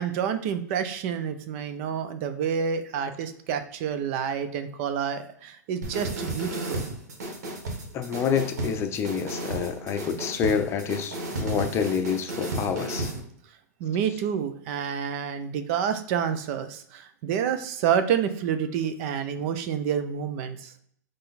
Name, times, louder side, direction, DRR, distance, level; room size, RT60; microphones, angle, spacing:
voice 1, 0.0-6.8 13.8-20.7, right 8 dB, 45° right, 10 dB, 0.6 m, -28 dB
sound 1, 5.8-13.2, right 1 dB, 70° right, 1.4 m, -33 dB
voice 2, 7.9-13.1, left 7 dB, 30° left, 8 dB, 0.6 m, -28 dB
3.8 x 3.3 x 4.1 m, 0.67 s
hypercardioid pair, 110°, 9 cm